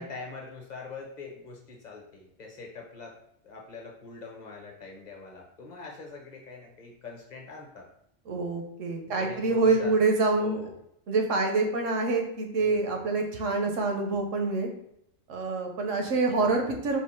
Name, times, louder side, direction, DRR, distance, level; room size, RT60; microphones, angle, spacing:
voice 1, 0.0-3.1 3.4-7.9 9.1-9.9 10.3-10.8 12.6-13.0, left 4 dB, 40° left, 0 dB, 0.9 m, -43 dB
voice 2, 8.3-10.6 11.1-14.7 15.3-17.0, right 3 dB, 90° right, 3 dB, 1.1 m, -26 dB
3.9 x 2.6 x 4.3 m, 0.76 s
omnidirectional pair, 1.3 m